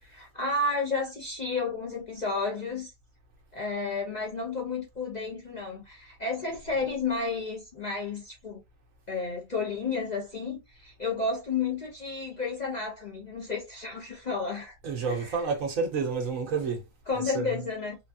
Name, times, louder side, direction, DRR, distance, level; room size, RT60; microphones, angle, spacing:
voice 1, 0.0-2.9 3.5-8.6 9.1-14.8 15.1-15.4 17.1-18.0, left 4 dB, 40° left, 0.6 m, -32 dB
voice 2, 14.8-16.8 17.1-17.6, right 5 dB, 70° right, 1.4 m, -30 dB
3.8 x 2.3 x 2.7 m
omnidirectional pair, 1.4 m